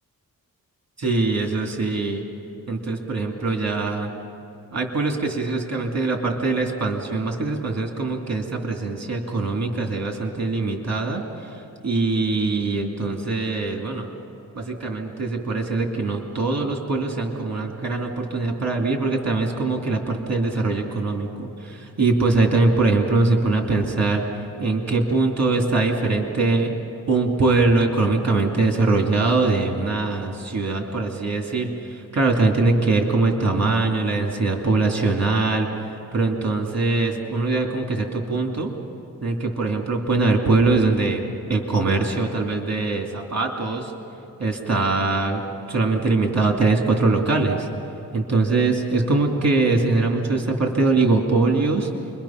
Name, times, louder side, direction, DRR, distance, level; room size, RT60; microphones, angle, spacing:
voice 1, 1.0-2.2 2.7-4.1 4.7-11.2 11.8-14.1 14.5-24.2 24.6-26.7 27.1-38.7 39.2-41.2 41.5-43.9 44.4-45.4 45.7-47.7 48.1-51.9, right 3 dB, 45° right, 1 dB, 2.7 m, -22 dB
29.0 x 23.0 x 5.9 m, 2.8 s
wide cardioid pair, 115°, 35 cm